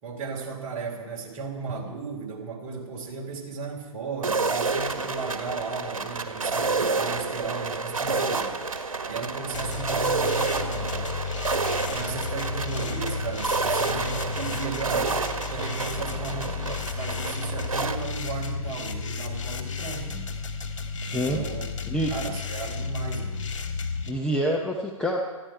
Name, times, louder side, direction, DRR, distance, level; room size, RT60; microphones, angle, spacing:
voice 1, 0.0-8.5 9.1-11.1 11.8-15.2 15.5-20.3 21.0-21.7 22.1-23.4, right 4 dB, 30° right, 0 dB, 3.5 m, -35 dB
sound 1, 4.2-18.0, right 4 dB, 70° right, 1.6 m, -29 dB
sound 2, 9.5-24.1, left 5 dB, 60° left, 1.9 m, -33 dB
voice 2, 21.0-21.4 21.9-22.1 24.1-25.2, equal, 5° left, -1 dB, 0.9 m, -26 dB
20.5 x 14.5 x 4.5 m, 1.3 s
figure-of-eight pair, 130°, 18 cm